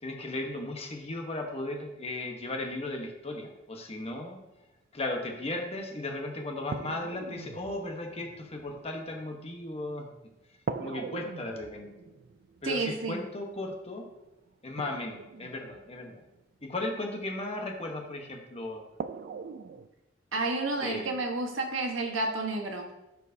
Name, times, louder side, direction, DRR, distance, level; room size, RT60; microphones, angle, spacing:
voice 1, 0.0-4.4 4.9-10.1 10.8-12.1 12.6-14.1 14.6-16.2 16.6-18.8 20.8-21.1, left 2 dB, 30° left, 2 dB, 1.1 m, -36 dB
sound 1, 5.8-5.9 6.7-10.1 10.7-16.8 18.2-18.3 19.0-19.9, right 5 dB, 50° right, 0.4 m, -42 dB
voice 2, 12.6-13.2 20.3-22.9, right 2 dB, 85° right, 2 dB, 1.3 m, -31 dB
12.5 x 4.6 x 2.7 m, 0.95 s
head